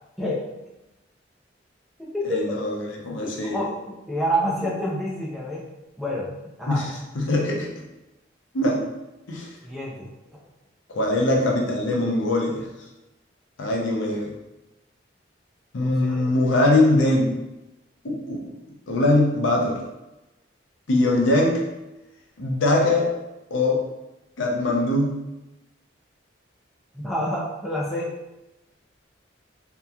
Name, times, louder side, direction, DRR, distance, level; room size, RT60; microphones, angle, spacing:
voice 1, 0.2-0.5 2.0-2.6 3.4-5.7 6.0-6.3 6.6-6.8 9.6-10.1 15.8-16.3 26.9-28.1, equal, ahead, -5 dB, 0.4 m, -28 dB
voice 2, 2.2-3.6 6.7-7.7 8.5-8.8 9.3-9.5 10.9-12.7 13.6-14.3 15.7-17.3 18.0-18.4 18.9-19.8 20.9-21.6 22.4-23.1 23.5-23.8 24.4-25.1, left 2 dB, 85° left, -1 dB, 0.6 m, -22 dB
2.8 x 2.2 x 2.3 m, 0.98 s
head